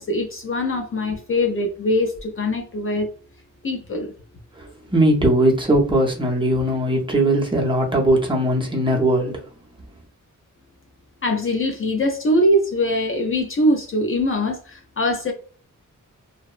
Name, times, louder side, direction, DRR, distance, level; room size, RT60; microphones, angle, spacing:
voice 1, 0.0-3.1 3.6-4.1 11.2-15.3, left 1 dB, 40° left, 0.4 m, -22 dB
voice 2, 4.6-9.4, right 1 dB, 15° right, 0.6 m, -19 dB
2.6 x 2.0 x 2.4 m
wide cardioid pair, 140°, 32 cm